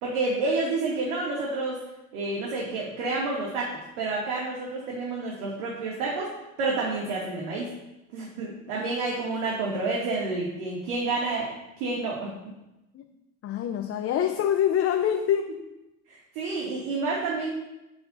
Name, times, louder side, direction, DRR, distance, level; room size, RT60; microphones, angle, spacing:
voice 1, 0.0-1.8 2.1-3.7 4.0-6.3 6.6-7.7 8.1-11.5 11.8-12.3 16.1-17.5, right 3 dB, 60° right, -4 dB, 2.7 m, -29 dB
voice 2, 13.4-15.5, left 9 dB, 30° left, 5 dB, 0.8 m, -25 dB
11.5 x 8.8 x 2.8 m, 0.96 s
hypercardioid pair, 80°, 44 cm